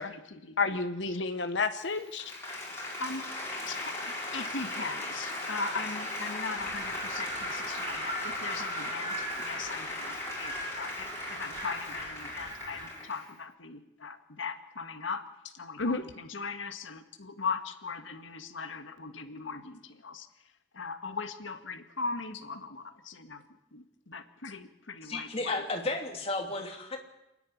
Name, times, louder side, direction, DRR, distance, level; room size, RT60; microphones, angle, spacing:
voice 1, 0.0-0.8 1.1-1.3 3.0-3.3 3.7-15.2 15.6-20.3 20.7-23.4 23.7-25.6, left 4 dB, 85° left, 9 dB, 1.7 m, -39 dB
voice 2, 0.6-2.3 15.8-16.0, left 4 dB, 65° left, 7 dB, 1.1 m, -30 dB
Applause, 1.8-13.4, left 2 dB, 15° left, 6.8 m, -38 dB
Wind, 6.6-13.0, right 2 dB, 25° right, 2.8 m, -41 dB
voice 3, 25.1-27.0, left 2 dB, 30° left, 2 dB, 3.2 m, -33 dB
28.0 x 10.5 x 9.8 m, 0.89 s
head